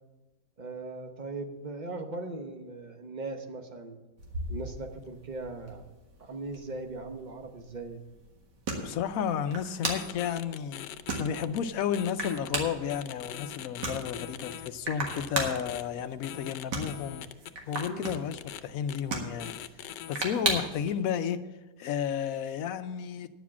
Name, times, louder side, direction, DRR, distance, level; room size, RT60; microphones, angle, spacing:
voice 1, 0.6-4.0 4.5-5.8 6.2-8.0 17.9-18.1, right 3 dB, 35° right, 5 dB, 0.8 m, -39 dB
sound 1, 4.2-20.9, right 3 dB, 85° right, 2.3 m, -38 dB
voice 2, 8.8-17.3 17.7-19.5 20.1-21.4 21.8-23.3, left 8 dB, 65° left, 10 dB, 0.9 m, -32 dB
sound 2, 9.8-11.6 11.9-12.5 12.9-14.7 15.1-15.8 16.2-18.6 18.9-19.0 19.4-20.2, left 11 dB, 85° left, 1.2 m, -42 dB
10.0 x 7.2 x 7.2 m, 1.1 s
omnidirectional pair, 1.8 m